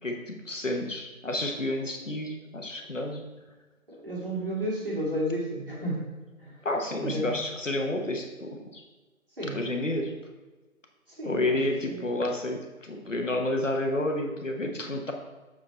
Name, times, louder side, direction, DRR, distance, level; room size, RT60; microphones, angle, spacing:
voice 1, 0.0-3.2 6.6-8.8 9.5-10.1 11.2-15.1, left 1 dB, 65° left, 3 dB, 1.2 m, -30 dB
voice 2, 3.9-6.0 6.4-6.6 7.0-7.4 9.4-9.6 11.1-12.1, equal, 40° right, -5 dB, 2.2 m, -32 dB
7.3 x 4.8 x 4.1 m, 1.2 s
figure-of-eight pair, 170°, 41 cm